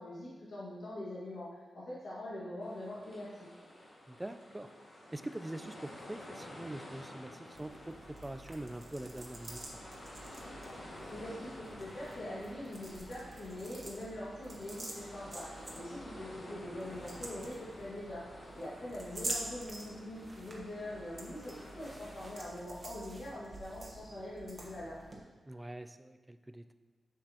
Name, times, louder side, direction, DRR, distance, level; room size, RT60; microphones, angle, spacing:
voice 1, 0.0-1.5 1.7-3.5 11.1-18.2 18.5-25.0, left 1 dB, 65° left, -8 dB, 1.7 m, -43 dB
sound 1, 2.6-22.4, left 1 dB, 45° left, 1.9 m, -51 dB
voice 2, 4.1-4.7 5.1-9.8 25.5-26.7, right 1 dB, 10° right, 10 dB, 0.3 m, -44 dB
sound 2, 7.5-25.2, right 2 dB, 30° right, 1.2 m, -47 dB
7.3 x 6.8 x 2.9 m, 1.4 s
wide cardioid pair, 120°, 0 cm